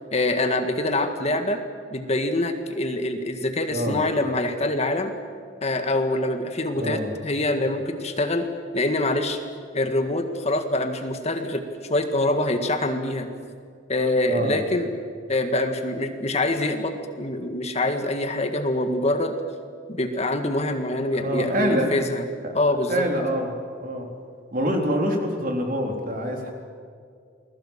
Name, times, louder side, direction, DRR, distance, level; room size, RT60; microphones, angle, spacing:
voice 1, 0.1-1.6 1.9-5.1 5.6-8.5 8.7-9.4 9.7-11.6 11.9-13.3 13.9-14.9 15.3-19.3 19.9-22.2 22.5-23.1, left 2 dB, 35° left, 6 dB, 1.8 m, -25 dB
voice 2, 6.8-7.1 14.3-14.6 21.1-21.9 22.4-23.5 23.8-24.1 24.5-26.5, equal, 50° right, 2 dB, 4.1 m, -26 dB
29.5 x 21.0 x 7.5 m, 2.2 s
head